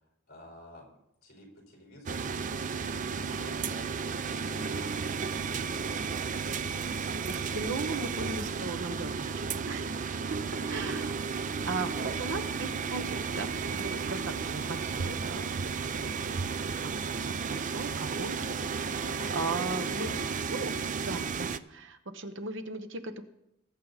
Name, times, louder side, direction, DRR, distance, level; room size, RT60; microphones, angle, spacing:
voice 1, 0.3-0.9 1.2-6.1 10.6-11.0 11.8-12.2 18.4-18.5 19.0-20.4, equal, 50° left, -1 dB, 4.4 m, -50 dB
sound 1, 2.1-21.6, right 5 dB, 40° right, 0.5 m, -33 dB
voice 2, 6.6-10.4 10.7-11.1 11.7-18.4 18.7-20.1 20.4-23.2, right 3 dB, 65° right, 9 dB, 1.0 m, -38 dB
20.5 x 8.4 x 4.1 m, 0.82 s
head